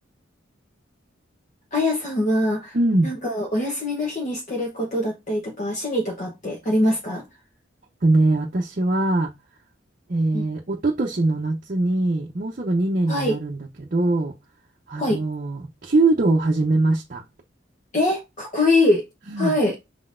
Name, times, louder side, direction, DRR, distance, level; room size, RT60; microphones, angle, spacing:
voice 1, 1.7-2.8 3.0-7.2 10.3-10.5 13.1-13.4 15.0-15.2 17.9-19.0 19.4-19.8, left 1 dB, 40° left, 0.9 m, -23 dB
voice 2, 2.7-3.1 8.0-9.3 10.1-14.3 14.9-17.2 19.3-19.5, right 2 dB, 45° right, 0.6 m, -22 dB
5.0 x 3.8 x 2.5 m
head